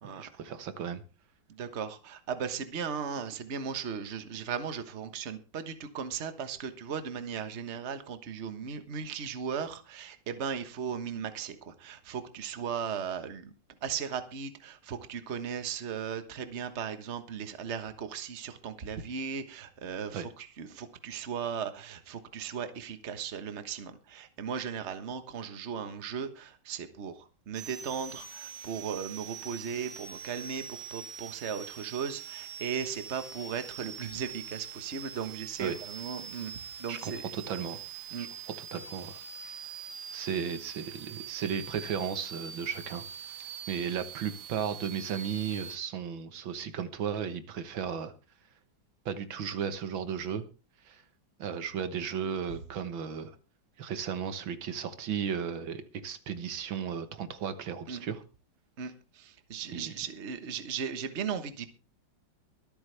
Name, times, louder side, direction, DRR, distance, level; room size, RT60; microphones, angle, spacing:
voice 1, 0.0-1.0 20.1-20.3 35.6-35.8 36.9-37.8 38.2-38.3 38.7-39.6 40.1-43.0 43.7-48.1 49.1-50.4 50.9-51.0 51.4-53.4 53.8-58.2 59.7-59.9, right 7 dB, 85° right, 11 dB, 2.0 m, -35 dB
voice 2, 1.5-13.5 13.8-37.2 38.1-38.3 57.9-58.0 58.8-61.7, right 7 dB, 40° right, 10 dB, 1.4 m, -37 dB
sound 1, 27.5-45.8, right 7 dB, 60° right, 1.7 m, -44 dB
24.0 x 8.8 x 3.4 m, 0.31 s
omnidirectional pair, 2.1 m